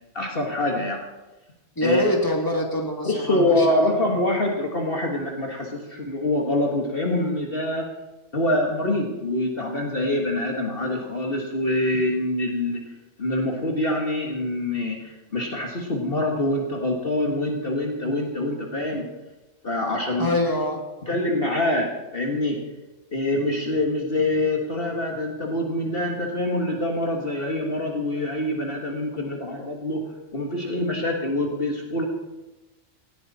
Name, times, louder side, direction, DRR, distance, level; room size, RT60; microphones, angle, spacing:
voice 1, 0.1-1.0 1.8-2.1 3.0-7.9 8.3-12.8 13.2-19.1 19.6-20.3 21.1-22.6 23.1-30.0 30.3-32.0, left 1 dB, 45° left, 0 dB, 2.1 m, -25 dB
voice 2, 1.8-3.8 20.2-20.8, left 1 dB, 15° left, 0 dB, 2.6 m, -24 dB
18.5 x 15.0 x 4.3 m, 1.1 s
omnidirectional pair, 1.3 m